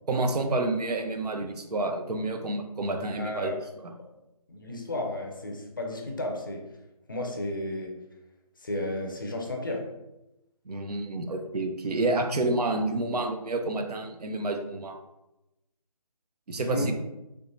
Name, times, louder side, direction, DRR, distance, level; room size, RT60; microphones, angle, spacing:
voice 1, 0.1-3.9 10.7-15.0 16.5-16.9, right 2 dB, 85° right, 5 dB, 0.5 m, -29 dB
voice 2, 3.0-3.6 4.5-6.7 7.1-8.0 8.6-9.9 16.5-16.9, left 1 dB, 35° left, 1 dB, 0.4 m, -33 dB
3.2 x 3.0 x 2.6 m, 0.95 s
figure-of-eight pair, 165°, 19 cm